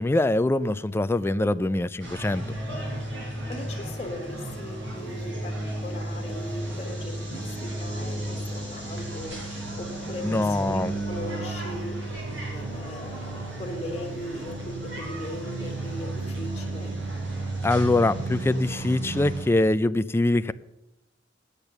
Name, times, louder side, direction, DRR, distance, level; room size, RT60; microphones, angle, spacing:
voice 1, 0.0-2.4 10.2-10.9 17.6-20.5, left 2 dB, 15° left, 0.3 m, -23 dB
sound 1, 2.0-19.4, right 2 dB, 90° right, 4.5 m, -33 dB
voice 2, 2.7-9.4 9.8-12.0 12.5-17.0, left 1 dB, 30° left, 1.5 m, -38 dB
8.8 x 8.2 x 6.7 m
head